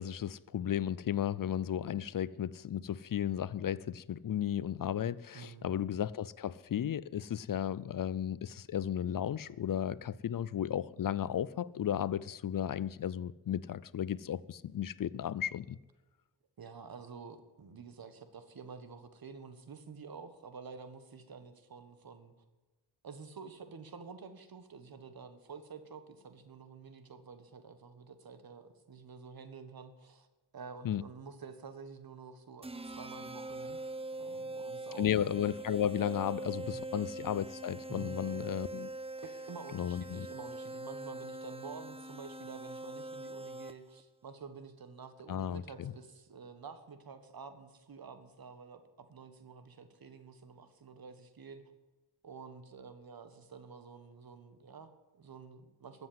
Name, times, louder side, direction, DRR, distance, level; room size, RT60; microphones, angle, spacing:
voice 1, 0.0-15.8 30.8-31.0 35.0-38.9 39.7-40.3 45.3-45.9, left 10 dB, 55° left, 0.5 m, -34 dB
voice 2, 5.3-5.7 16.6-22.3 23.0-30.3 30.5-33.8 34.2-35.0 36.6-36.8 37.9-38.1 39.2-51.6 52.2-56.1, right 5 dB, 65° right, 1.7 m, -49 dB
sound 1, 32.6-44.0, right 2 dB, 15° right, 0.7 m, -43 dB
13.5 x 7.9 x 9.5 m
cardioid pair, 80°, 39 cm